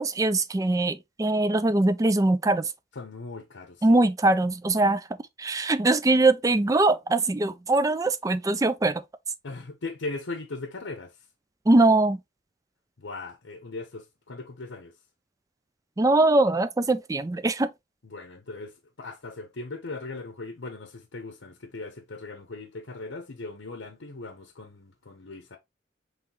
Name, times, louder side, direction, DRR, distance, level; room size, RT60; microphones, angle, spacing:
voice 1, 0.0-2.7 3.8-5.0 5.4-9.0 11.7-12.2 16.0-17.7, right 2 dB, 20° right, 0.4 m, -22 dB
voice 2, 2.9-4.0 9.4-11.2 13.0-14.9 18.0-25.6, left 3 dB, 90° left, 0.8 m, -39 dB
5.6 x 3.2 x 2.9 m
head